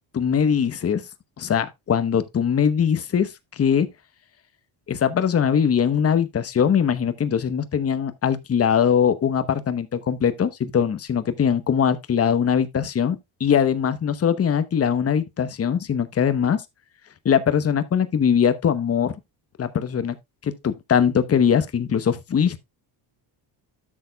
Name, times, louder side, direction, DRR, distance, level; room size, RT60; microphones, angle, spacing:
voice 1, 0.1-1.0 1.4-3.9 4.9-16.6 17.2-19.1 19.6-20.2 20.4-22.6, left 7 dB, 30° left, 0.9 m, -21 dB
12.5 x 6.8 x 2.3 m
cardioid pair, 100°, 48 cm